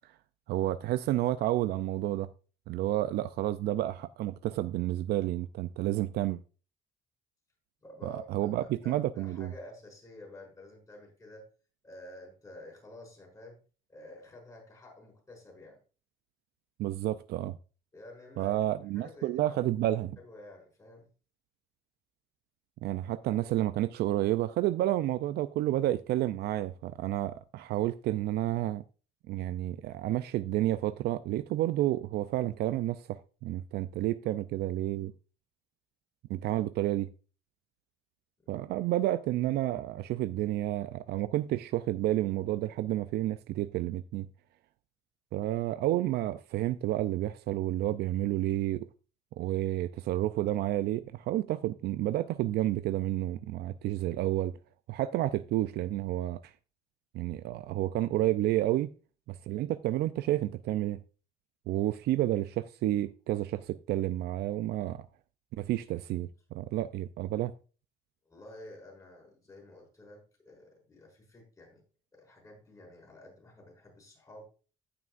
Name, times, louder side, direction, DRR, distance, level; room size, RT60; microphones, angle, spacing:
voice 1, 0.5-2.3 2.7-6.4 8.0-9.5 16.8-17.6 18.4-20.2 22.8-28.8 29.3-35.1 36.3-37.1 38.5-44.3 45.3-48.9 49.4-54.6 54.9-56.5 57.1-58.9 59.3-61.0 61.7-65.1 65.6-67.5, right 14 dB, 70° right, 0.5 m, -30 dB
voice 2, 7.8-11.5 11.8-13.6 13.9-15.8 17.9-18.5 18.9-19.6 19.9-21.1 68.2-71.8 72.1-74.5, left 1 dB, 20° left, 5.5 m, -50 dB
15.5 x 6.0 x 2.5 m
cardioid pair, 110°, 17 cm